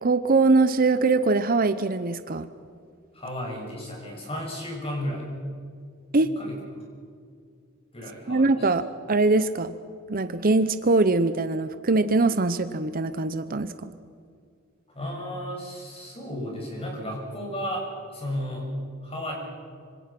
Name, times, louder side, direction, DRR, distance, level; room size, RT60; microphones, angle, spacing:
voice 1, 0.0-2.5 6.1-6.3 8.3-9.7 10.1-13.9, right 3 dB, 40° right, 11 dB, 0.8 m, -22 dB
voice 2, 3.1-5.3 6.2-6.6 7.9-8.7 14.9-18.7 19.0-19.3, equal, 25° left, -1 dB, 7.0 m, -34 dB
25.5 x 25.5 x 6.1 m, 2.2 s
head